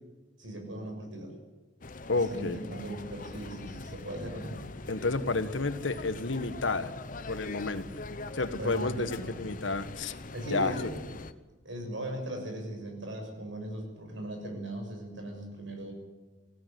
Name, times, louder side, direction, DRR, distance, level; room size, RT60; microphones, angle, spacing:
voice 1, 0.4-1.3 2.1-4.6 8.6-9.4 10.3-11.0 11.6-15.9, right 1 dB, 80° right, 3 dB, 6.7 m, -38 dB
sound 1, 1.8-11.3, left 3 dB, 45° left, 0.9 m, -42 dB
voice 2, 2.1-2.6 4.9-6.9 7.3-7.8 8.3-10.1 10.5-10.9, left 3 dB, 80° left, 11 dB, 1.4 m, -30 dB
20.5 x 15.5 x 9.3 m, 1.2 s
head